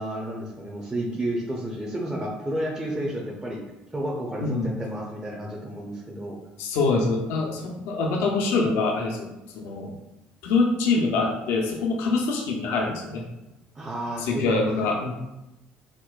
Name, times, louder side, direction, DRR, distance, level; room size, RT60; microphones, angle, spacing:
voice 1, 0.0-3.6 3.9-6.4 13.8-14.4 14.8-14.9, right 1 dB, 15° right, -3 dB, 0.6 m, -31 dB
voice 2, 6.6-9.3 9.5-9.9 10.4-13.2 14.2-15.1, left 3 dB, 75° left, 0 dB, 0.5 m, -24 dB
4.3 x 2.1 x 2.3 m, 0.95 s
supercardioid pair, 75°, 4 cm